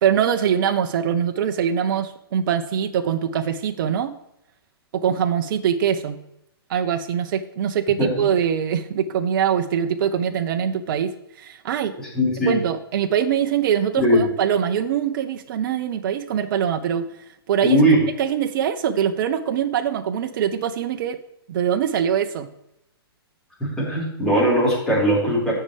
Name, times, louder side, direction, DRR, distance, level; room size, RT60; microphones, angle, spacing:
voice 1, 0.0-4.1 4.9-6.2 6.7-11.1 11.4-11.9 12.5-17.1 17.5-17.8 18.2-21.2 21.5-22.5, right 8 dB, 55° right, 8 dB, 0.6 m, -23 dB
voice 2, 12.0-12.6 14.0-14.2 17.6-18.0 23.6-25.5, equal, 5° left, -7 dB, 3.9 m, -19 dB
16.0 x 5.6 x 3.2 m, 0.83 s
hypercardioid pair, 140°, 13 cm